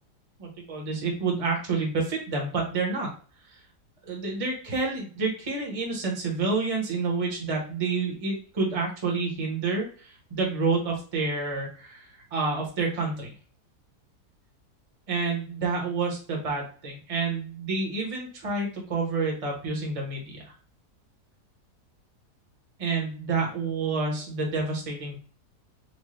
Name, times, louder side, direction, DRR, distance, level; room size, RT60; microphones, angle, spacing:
voice 1, 0.4-3.1 3.5-3.6 4.0-13.3 15.1-20.4 22.8-25.2, right 4 dB, 25° right, 0 dB, 1.0 m, -29 dB
4.4 x 2.3 x 3.1 m, 0.40 s
omnidirectional pair, 1.7 m